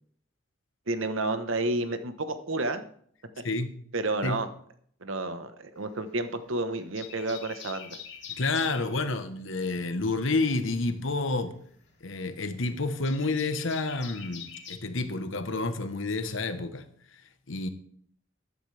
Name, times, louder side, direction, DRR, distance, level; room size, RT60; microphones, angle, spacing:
voice 1, 0.9-2.8 3.9-4.5 5.0-8.0, right 2 dB, 80° right, 1.1 m, -30 dB
voice 2, 3.4-3.8 4.2-4.4 8.4-11.6 12.0-16.8 17.5-17.7, left 3 dB, 75° left, 1.1 m, -29 dB
sound 1, 5.8-6.5 6.8-8.9 10.6-14.8, left 8 dB, 60° left, 2.7 m, -44 dB
13.5 x 11.0 x 3.4 m
head